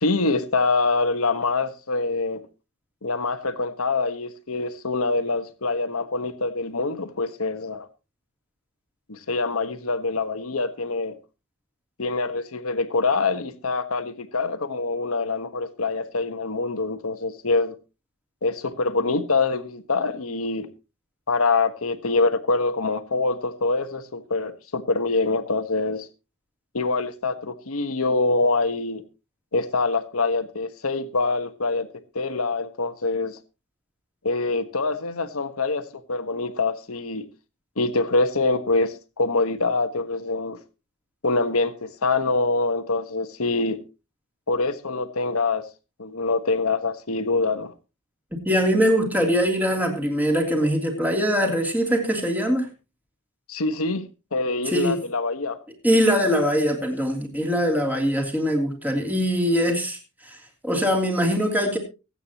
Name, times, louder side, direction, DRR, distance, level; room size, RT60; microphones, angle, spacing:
voice 1, 0.0-2.4 3.0-7.9 9.1-11.2 12.0-17.7 18.4-20.7 21.3-26.1 26.7-29.0 29.5-31.9 32.1-33.4 34.2-37.3 37.8-40.6 41.2-43.8 44.5-45.7 46.0-47.7 53.5-54.1 54.3-55.6, left 3 dB, 85° left, 1.4 m, -25 dB
voice 2, 48.4-52.7 54.6-55.0 55.8-61.8, equal, 10° right, 3.1 m, -22 dB
24.0 x 8.9 x 3.0 m
head